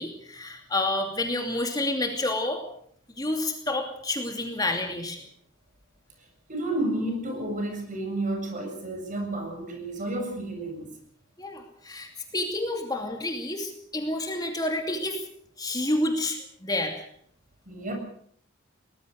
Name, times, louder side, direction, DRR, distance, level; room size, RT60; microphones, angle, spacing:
voice 1, 0.0-2.6 3.2-5.2 11.4-15.2 15.6-17.1, left 2 dB, 20° left, 3 dB, 2.6 m, -29 dB
voice 2, 6.5-10.9 17.7-17.9, right 1 dB, 40° right, 3 dB, 7.5 m, -31 dB
23.5 x 19.5 x 6.5 m, 0.63 s
head